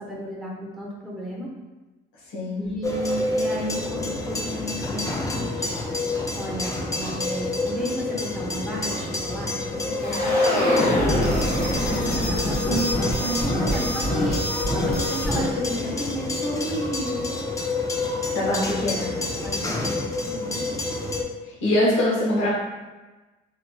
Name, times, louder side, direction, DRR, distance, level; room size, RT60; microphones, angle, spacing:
voice 1, 0.0-1.5 2.6-5.8 6.3-11.4 11.8-12.0 13.4-14.4 14.8-17.2 19.3-20.6, equal, ahead, -5 dB, 1.0 m, -33 dB
voice 2, 2.3-2.6 12.6-12.9 13.2-13.4 18.3-19.1 21.6-22.5, left 1 dB, 90° left, -6 dB, 1.1 m, -23 dB
sound 1, 2.8-21.2, left 2 dB, 15° left, 0.4 m, -28 dB
sound 2, 10.0-15.5, equal, 55° left, 1.1 m, -25 dB
3.0 x 2.9 x 2.2 m, 1.2 s
cardioid pair, 90°, 20 cm